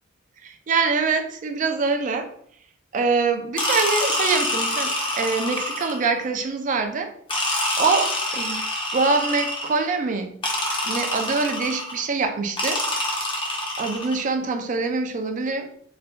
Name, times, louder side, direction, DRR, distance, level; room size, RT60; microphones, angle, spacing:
voice 1, 0.4-2.3 2.9-7.1 7.8-8.6 8.9-10.3 10.9-12.8 13.8-15.7, right 4 dB, 40° right, 6 dB, 0.4 m, -24 dB
sound 1, 3.6-6.1 7.3-9.9 10.4-12.0 12.6-14.2, left 1 dB, 25° left, 0.6 m, -26 dB
2.7 x 2.2 x 3.4 m, 0.65 s
head